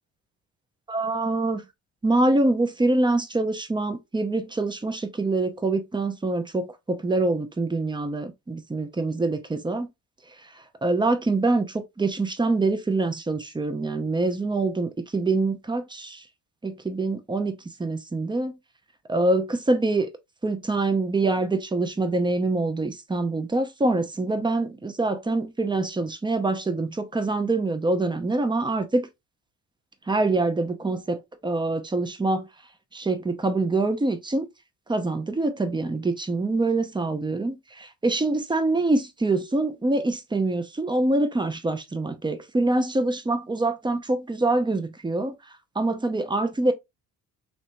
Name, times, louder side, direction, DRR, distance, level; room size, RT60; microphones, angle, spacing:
voice 1, 0.9-1.6 2.0-9.9 10.8-16.2 16.6-18.5 19.1-20.1 20.4-29.1 30.1-32.5 32.9-34.5 34.9-45.3 45.8-46.7, right 2 dB, 10° right, 0.5 m, -25 dB
3.0 x 2.9 x 2.5 m
hypercardioid pair, 50°, 48 cm